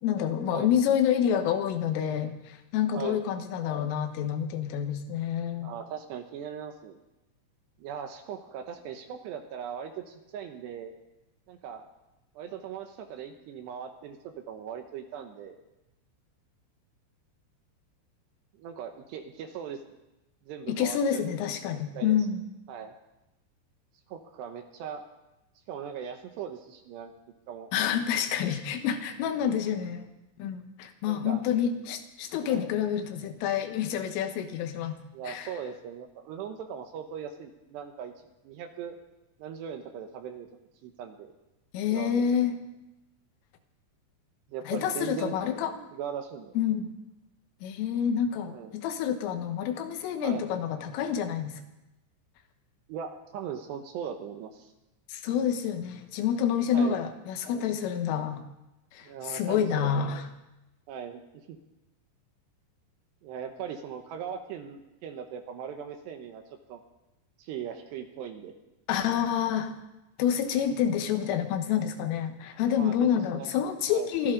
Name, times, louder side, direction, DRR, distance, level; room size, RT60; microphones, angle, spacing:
voice 1, 0.0-5.7 20.7-22.4 27.7-30.1 30.4-35.0 35.3-35.5 41.7-42.6 44.7-45.8 46.6-46.9 47.6-51.6 55.1-58.4 58.9-60.2 68.9-69.7 70.2-74.3, left 8 dB, 90° left, 6 dB, 3.8 m, -28 dB
voice 2, 5.6-7.0 7.8-10.9 11.5-11.9 12.4-15.6 18.6-19.8 20.4-21.2 21.9-22.2 22.7-22.9 24.1-25.0 25.7-27.1 27.5-27.7 29.4-29.5 31.1-31.4 32.5-32.7 35.1-38.1 38.4-39.0 39.4-40.5 40.8-41.3 41.9-42.3 44.5-45.4 45.9-46.5 48.5-48.7 50.2-50.5 52.9-54.7 56.7-57.0 59.0-60.1 60.9-61.2 61.5-61.6 63.2-66.4 66.7-66.8 67.4-68.5 72.7-73.5 73.9-74.1, right 7 dB, 75° right, 6 dB, 2.7 m, -39 dB
24.5 x 14.5 x 3.8 m, 0.96 s
omnidirectional pair, 5.6 m